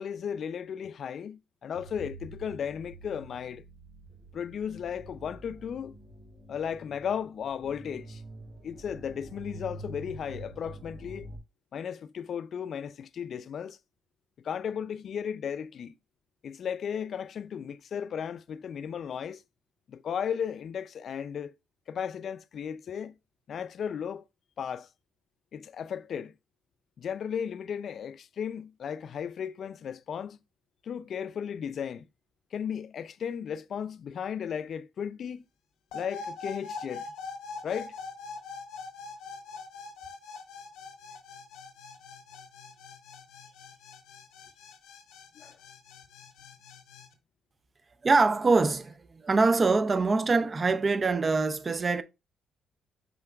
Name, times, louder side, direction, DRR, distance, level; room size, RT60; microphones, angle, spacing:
voice 1, 0.0-3.6 4.3-5.9 6.5-8.2 8.6-11.3 11.7-13.8 14.4-15.9 16.4-19.4 19.9-21.5 21.9-23.1 23.5-24.2 24.6-24.9 25.5-26.3 27.0-30.4 30.8-32.0 32.5-35.4 35.9-37.1 37.6-37.9 45.4-45.6, left 8 dB, 60° left, 0.3 m, -35 dB
sound 1, 1.7-11.4, right 2 dB, 55° right, 2.2 m, -47 dB
sound 2, 35.9-47.1, left 4 dB, 85° left, 0.6 m, -43 dB
voice 2, 48.0-52.0, right 3 dB, 30° right, 0.4 m, -24 dB
5.7 x 3.9 x 2.3 m
cardioid pair, 90°, 0 cm